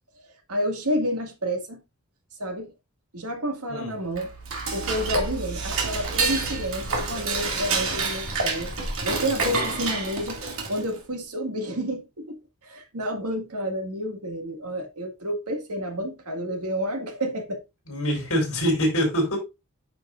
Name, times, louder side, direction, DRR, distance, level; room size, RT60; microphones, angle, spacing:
voice 1, 0.5-1.8 2.4-2.7 3.1-4.3 4.7-8.7 9.0-10.4 10.7-17.6, equal, 90° right, 1.8 m, -30 dB
Dishes pots and pans / Cutlery silverware, 4.1-11.0, right 4 dB, 65° right, 2.1 m, -28 dB
voice 2, 17.9-19.4, equal, 65° left, 4.2 m, -24 dB
9.3 x 5.4 x 2.5 m
head